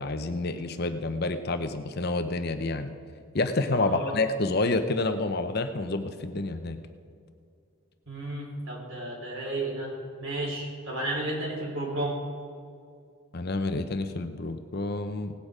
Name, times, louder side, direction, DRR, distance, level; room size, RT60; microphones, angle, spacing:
voice 1, 0.0-2.9 3.3-6.8 13.3-15.3, left 2 dB, 45° left, 8 dB, 0.7 m, -28 dB
voice 2, 3.8-4.2 8.1-9.9 10.2-12.2, right 2 dB, 65° right, -2 dB, 3.6 m, -32 dB
18.0 x 8.6 x 4.9 m, 2.3 s
head